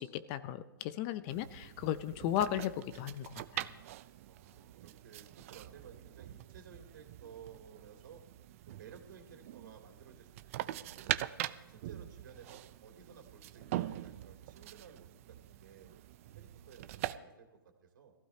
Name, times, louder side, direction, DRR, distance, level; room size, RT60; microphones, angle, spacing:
voice 1, 0.0-3.7, left 11 dB, 30° left, 14 dB, 0.5 m, -36 dB
sound 1, 1.3-17.2, right 14 dB, 35° right, 0.5 m, -43 dB
voice 2, 4.3-8.2 8.7-11.1 11.7-15.9 16.3-18.1, right 6 dB, 60° right, 3 dB, 2.9 m, -56 dB
21.5 x 15.5 x 2.8 m, 1.1 s
hypercardioid pair, 145°, 12 cm